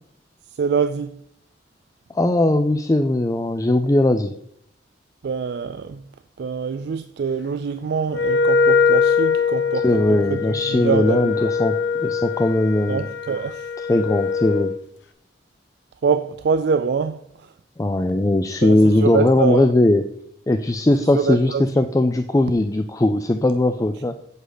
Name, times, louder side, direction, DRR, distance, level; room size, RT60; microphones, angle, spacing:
voice 1, 0.5-1.2 5.2-6.0 6.4-11.6 12.9-13.7 16.0-17.5 18.6-19.7 21.0-21.6, right 5 dB, 60° right, 0.4 m, -25 dB
voice 2, 2.1-4.3 9.8-13.1 13.9-14.7 17.8-20.0 20.5-24.2, left 1 dB, 20° left, 0.4 m, -19 dB
Wind instrument woodwind instrument, 8.1-14.8, left 5 dB, 70° left, 1.0 m, -22 dB
8.1 x 8.0 x 4.0 m
head